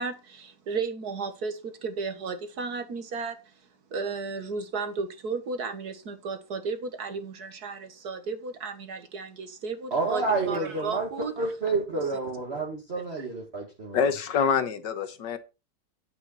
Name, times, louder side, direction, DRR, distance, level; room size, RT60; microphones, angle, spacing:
voice 1, 0.0-3.4 3.9-11.3 11.9-12.0 13.2-13.3, right 4 dB, 60° right, 1.9 m, -34 dB
voice 2, 9.9-11.1 11.4-14.1, right 3 dB, 35° right, 2.3 m, -29 dB
voice 3, 13.9-15.4, left 6 dB, 75° left, 1.8 m, -26 dB
9.5 x 8.9 x 4.2 m
omnidirectional pair, 1.9 m